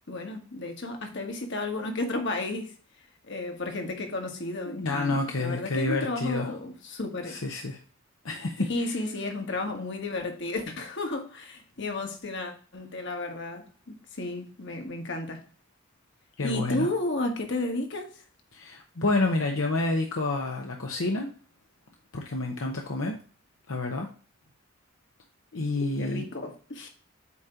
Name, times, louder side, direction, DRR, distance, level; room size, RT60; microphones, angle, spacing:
voice 1, 0.1-2.7 3.3-7.4 8.7-15.4 16.4-18.1 26.0-26.9, left 2 dB, 60° left, 1.4 m, -32 dB
voice 2, 4.7-6.5 7.3-7.8 8.2-8.9 16.4-16.9 18.5-21.3 22.1-23.2 23.7-24.1 25.5-26.3, left 2 dB, 75° left, 0.9 m, -29 dB
8.3 x 2.9 x 5.0 m
head